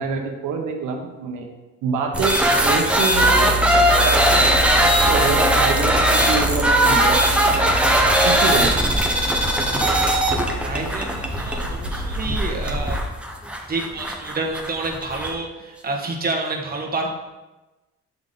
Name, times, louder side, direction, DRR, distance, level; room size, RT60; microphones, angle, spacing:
voice 1, 0.0-1.5 1.8-7.2 7.6-7.7 8.2-8.9, right 5 dB, 85° right, 2 dB, 0.8 m, -26 dB
sound 1, 2.1-15.3, right 1 dB, 5° right, 0.8 m, -19 dB
sound 2, 3.1-13.1, equal, 75° left, 1.9 m, -29 dB
voice 2, 10.6-13.0 13.7-17.1, right 3 dB, 30° right, 0 dB, 1.2 m, -28 dB
8.0 x 3.5 x 3.8 m, 1.1 s
cardioid pair, 90°, 30 cm